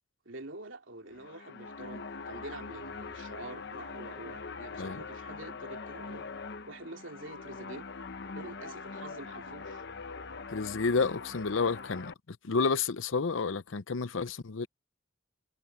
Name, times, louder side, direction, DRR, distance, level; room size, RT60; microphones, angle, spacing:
voice 1, 0.2-6.3 6.7-7.8 8.3-9.8, right 2 dB, 75° right, 2.7 m, -46 dB
sound 1, 1.0-12.1, left 4 dB, 60° left, 1.0 m, -43 dB
voice 2, 10.5-14.7, left 4 dB, 80° left, 0.7 m, -30 dB
head